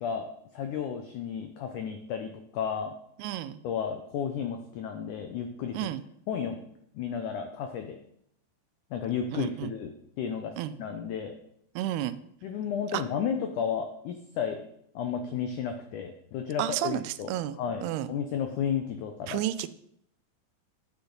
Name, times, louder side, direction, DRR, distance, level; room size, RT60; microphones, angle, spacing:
voice 1, 0.0-2.9 3.6-5.9 6.3-6.6 6.9-8.0 8.9-10.5 10.8-11.4 12.4-14.7 15.0-17.3 17.6-19.4, left 7 dB, 85° left, 5 dB, 1.8 m, -33 dB
voice 2, 3.2-3.6 5.7-6.0 9.3-9.7 10.6-10.8 11.8-12.2 12.9-13.0 16.6-18.1 19.3-19.7, right 13 dB, 90° right, 14 dB, 2.6 m, -31 dB
10.0 x 7.0 x 3.9 m, 0.72 s
omnidirectional pair, 4.5 m